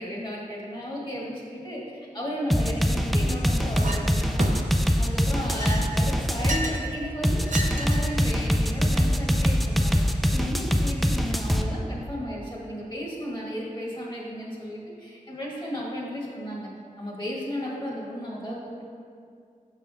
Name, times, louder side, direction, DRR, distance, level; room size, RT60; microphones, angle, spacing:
voice 1, 0.0-4.5 5.0-16.7 17.0-18.8, equal, 30° left, -4 dB, 1.5 m, -34 dB
sound 1, 2.5-6.6 7.2-11.6, equal, ahead, 0.3 m, -23 dB
Chink clink, 3.7-4.0 4.4-4.9 5.4-6.9 7.4-8.1, right 1 dB, 60° right, 0.6 m, -33 dB
6.3 x 5.3 x 3.4 m, 2.2 s
wide cardioid pair, 75°, 15 cm